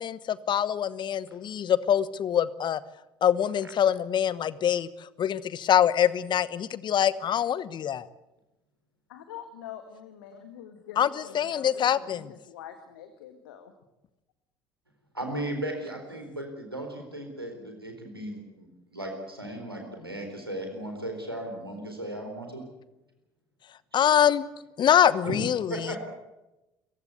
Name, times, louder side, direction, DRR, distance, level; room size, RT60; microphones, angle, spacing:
voice 1, 0.0-2.8 3.2-4.9 5.2-8.1 11.0-12.3 23.9-24.5 24.8-26.0, left 9 dB, 40° left, 18 dB, 1.1 m, -24 dB
voice 2, 9.1-13.7, left 9 dB, 70° left, 8 dB, 1.8 m, -45 dB
voice 3, 15.1-22.7 25.2-26.0, right 1 dB, 90° right, 3 dB, 4.0 m, -36 dB
27.5 x 15.5 x 8.2 m, 0.97 s
figure-of-eight pair, 60°, 12 cm